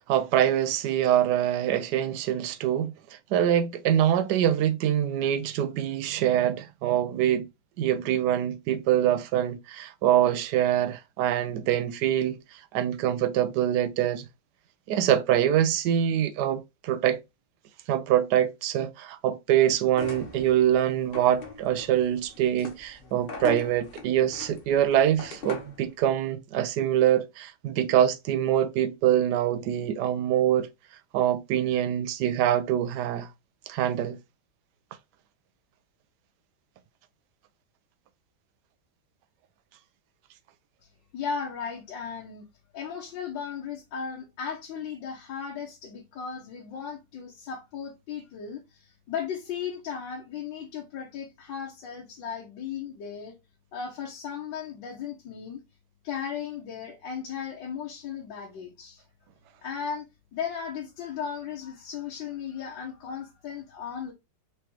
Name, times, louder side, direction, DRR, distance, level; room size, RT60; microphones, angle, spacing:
voice 1, 0.1-2.9 3.3-7.5 7.8-14.3 14.9-17.2 17.9-30.7 31.1-33.3 33.7-34.2, right 11 dB, 70° right, 1.1 m, -24 dB
sound 1, 19.9-25.8, left 3 dB, 40° left, 0.8 m, -40 dB
voice 2, 41.1-42.4 42.7-53.3 53.7-55.6 56.0-59.0 59.6-60.1 60.3-64.1, left 7 dB, 80° left, 1.6 m, -36 dB
4.8 x 3.1 x 3.0 m
omnidirectional pair, 2.0 m